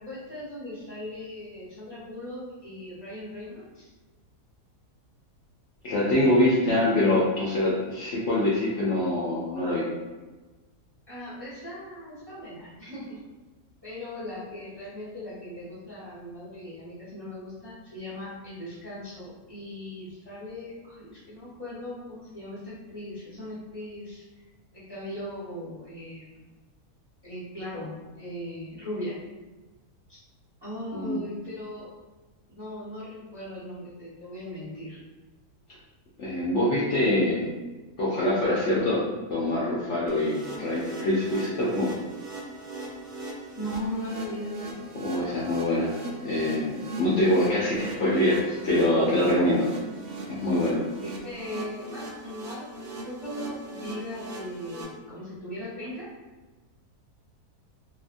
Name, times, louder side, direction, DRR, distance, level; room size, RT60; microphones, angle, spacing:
voice 1, 0.0-3.9 11.1-13.2 13.8-24.2 24.7-26.4 27.2-29.1 30.1-30.2 30.6-31.9 32.5-35.0 43.5-44.7 51.0-56.1, left 1 dB, 25° right, -11 dB, 0.6 m, -38 dB
voice 2, 5.8-9.8 30.9-31.2 36.2-37.5 38.0-39.0 39.3-41.9 45.0-45.9 46.2-49.7 50.3-50.8, left 1 dB, 65° left, -8 dB, 0.8 m, -24 dB
sound 1, 40.1-54.8, right 2 dB, 80° right, 1.1 m, -39 dB
2.7 x 2.4 x 2.5 m, 1.2 s
omnidirectional pair, 1.7 m